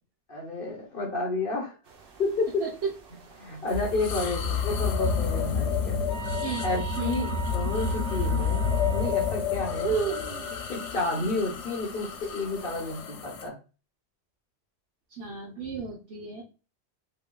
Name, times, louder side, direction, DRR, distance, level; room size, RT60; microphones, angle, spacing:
voice 1, 0.3-1.8 2.2-2.5 3.4-6.0 6.6-8.6 8.9-10.0 10.7-13.6, left 2 dB, 55° left, 0 dB, 1.2 m, -31 dB
sound 1, 1.8-13.0, right 7 dB, 60° right, 0.9 m, -40 dB
voice 2, 2.6-2.9 4.2-4.3 6.4-6.7 7.0-7.2 15.1-16.4, right 5 dB, 80° right, -2 dB, 1.2 m, -35 dB
sound 2, 3.7-13.5, left 6 dB, 85° left, 1.0 m, -30 dB
sound 3, 6.1-9.3, right 9 dB, 35° left, 1.7 m, -38 dB
5.4 x 2.7 x 2.3 m, 0.33 s
omnidirectional pair, 1.1 m